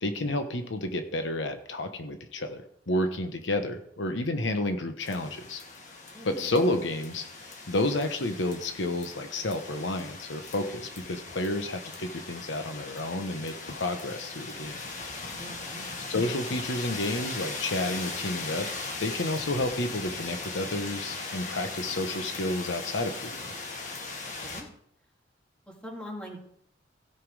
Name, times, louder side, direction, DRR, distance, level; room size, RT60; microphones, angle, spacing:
voice 1, 0.0-5.6 6.2-14.8 16.1-18.7 19.0-23.5, left 1 dB, 75° left, 6 dB, 1.1 m, -30 dB
sound 1, 5.0-24.6, left 3 dB, 40° left, 1.9 m, -39 dB
voice 2, 6.1-6.5 15.3-15.8 24.2-24.7 25.7-26.4, equal, 5° left, -1 dB, 2.5 m, -43 dB
16.5 x 5.9 x 4.9 m, 0.67 s
head